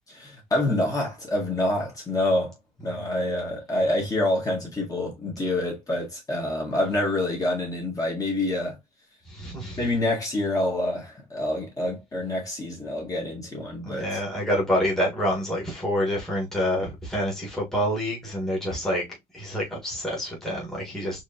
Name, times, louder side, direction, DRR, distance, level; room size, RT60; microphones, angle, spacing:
voice 1, 0.2-2.5 2.8-8.8 9.8-14.2, left 1 dB, 20° left, 1.6 m, -27 dB
voice 2, 9.3-9.8 13.8-19.0 19.3-21.2, equal, 5° left, 1.5 m, -27 dB
4.6 x 3.0 x 2.8 m
cardioid pair, 150°, 16 cm